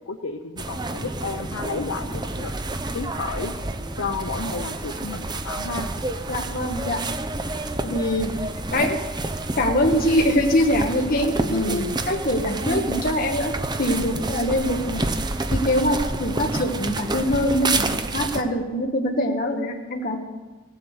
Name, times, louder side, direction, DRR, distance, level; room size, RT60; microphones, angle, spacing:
voice 1, 0.1-2.5 2.9-3.5 4.0-5.9 11.5-12.0, left 3 dB, 85° left, 5 dB, 0.8 m, -31 dB
sound 1, 0.6-18.4, right 2 dB, 20° right, 0.7 m, -29 dB
sound 2, 2.3-16.0, right 1 dB, 75° right, 4.1 m, -40 dB
voice 2, 6.3-7.0 7.8-8.3 8.7-9.0 9.6-13.5 13.8-15.0 15.5-20.2, left 1 dB, 45° left, 2 dB, 1.2 m, -23 dB
16.0 x 7.7 x 8.0 m, 1.3 s
head